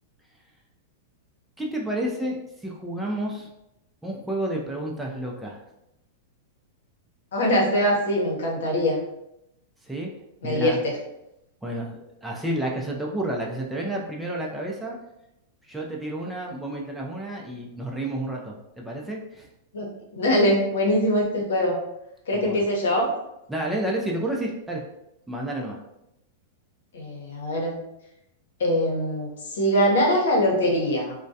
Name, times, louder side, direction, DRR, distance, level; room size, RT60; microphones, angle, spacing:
voice 1, 1.6-3.5 4.0-5.6 9.8-10.1 10.4-10.8 11.6-15.0 15.7-19.5 22.3-22.6 23.5-24.8 25.3-25.8, right 1 dB, 5° right, -2 dB, 0.4 m, -30 dB
voice 2, 7.3-9.0 10.4-10.9 19.7-19.8 20.1-21.8 22.3-23.1 26.9-27.8 28.6-31.1, equal, 80° left, -1 dB, 0.8 m, -22 dB
2.2 x 2.1 x 2.6 m, 0.85 s
hypercardioid pair, 125°, 0 cm